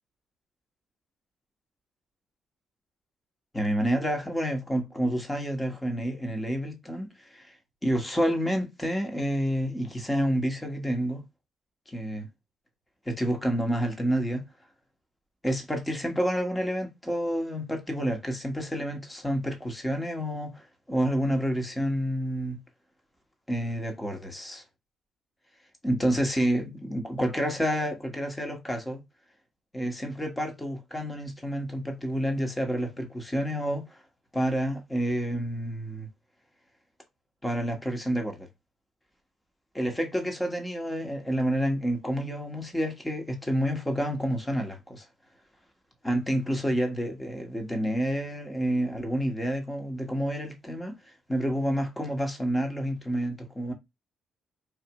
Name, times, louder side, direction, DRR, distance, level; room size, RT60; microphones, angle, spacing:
voice 1, 3.5-7.5 7.8-11.2 11.9-12.3 13.0-14.4 15.4-22.6 23.5-24.6 25.8-29.0 29.7-34.0 34.3-36.1 37.4-38.5 39.7-45.0 46.0-53.7, equal, 10° left, 1.2 m, -29 dB
4.8 x 2.6 x 2.9 m
cardioid pair, 90°, 0 cm